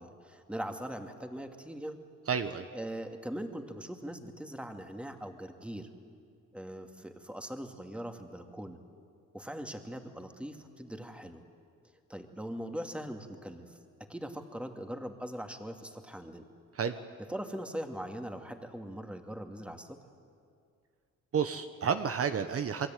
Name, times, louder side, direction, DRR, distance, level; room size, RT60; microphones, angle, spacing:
voice 1, 0.0-2.0 2.7-5.9 6.5-8.8 9.3-11.4 12.1-13.8 14.1-16.5 17.3-20.0, equal, 5° right, 5 dB, 2.5 m, -41 dB
voice 2, 2.3-2.7 16.7-17.0 21.3-22.9, right 7 dB, 50° right, 8 dB, 1.2 m, -31 dB
28.5 x 22.5 x 9.2 m, 2.3 s
cardioid pair, 90°, 30 cm